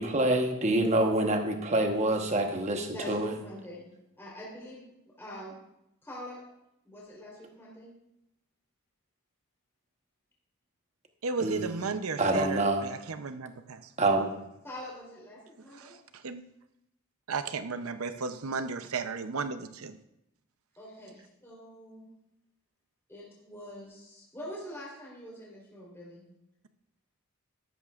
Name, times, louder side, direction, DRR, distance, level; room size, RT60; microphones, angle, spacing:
voice 1, 0.0-3.3 11.4-11.7 12.2-12.9 14.0-14.3, right 2 dB, 30° right, 4 dB, 1.1 m, -26 dB
voice 2, 2.9-3.9 4.2-4.8 5.2-5.5 6.0-6.4 6.8-7.9 14.6-16.0 20.8-22.1 23.1-26.2, equal, 10° left, -6 dB, 3.6 m, -44 dB
voice 3, 11.2-13.8 15.7-16.4 17.3-20.0, right 4 dB, 75° right, 10 dB, 0.6 m, -34 dB
13.5 x 12.0 x 2.4 m, 0.84 s
head